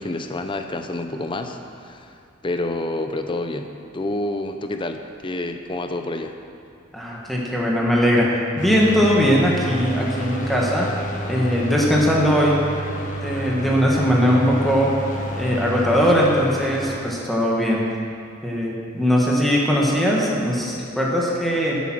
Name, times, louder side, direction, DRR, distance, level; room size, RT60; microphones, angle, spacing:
voice 1, 0.0-2.1 2.4-6.3, left 2 dB, 25° left, 6 dB, 0.7 m, -28 dB
voice 2, 6.9-10.9 11.2-12.6 13.2-15.0 15.3-17.9 18.4-21.8, equal, ahead, -4 dB, 1.5 m, -20 dB
sound 1, 8.6-17.0, equal, 40° left, 1.4 m, -29 dB
12.5 x 8.3 x 6.1 m, 2.5 s
head